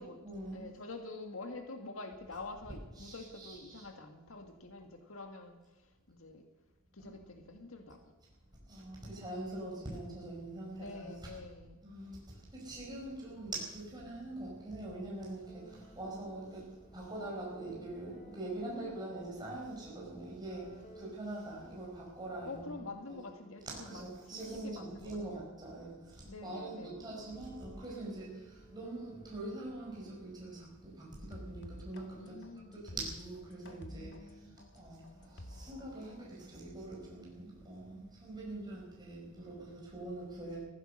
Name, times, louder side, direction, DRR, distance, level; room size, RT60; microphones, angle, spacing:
voice 1, 0.0-0.7 2.9-3.9 7.0-7.1 7.5-7.6 8.7-11.4 11.8-22.8 23.1-23.2 23.8-32.4 32.7-34.2 34.7-40.6, right 2 dB, 20° right, -4 dB, 4.8 m, -44 dB
voice 2, 0.5-6.4 6.9-8.0 10.7-11.8 18.6-19.2 22.4-25.5 26.2-27.0 32.2-32.8 33.9-34.7, left 3 dB, 80° left, 4 dB, 1.9 m, -47 dB
sound 1, 15.5-30.5, equal, 30° left, 2.1 m, -59 dB
sound 2, 31.3-36.3, left 1 dB, 60° left, 1.8 m, -50 dB
16.0 x 14.5 x 6.4 m, 1.1 s
head